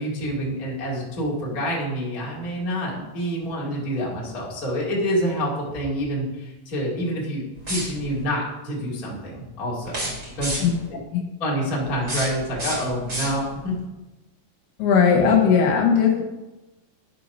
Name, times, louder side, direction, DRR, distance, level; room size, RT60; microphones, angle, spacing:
voice 1, 0.0-7.4 7.7-10.1 10.4-10.6 11.4-13.7, equal, 30° left, -5 dB, 2.1 m, -27 dB
sound 1, 7.6-8.2 9.8-10.9 11.9-13.7, right 1 dB, 20° right, 2.5 m, -31 dB
voice 2, 14.8-16.2, left 6 dB, 75° left, 0 dB, 3.2 m, -18 dB
11.0 x 4.7 x 5.5 m, 1.1 s
omnidirectional pair, 4.8 m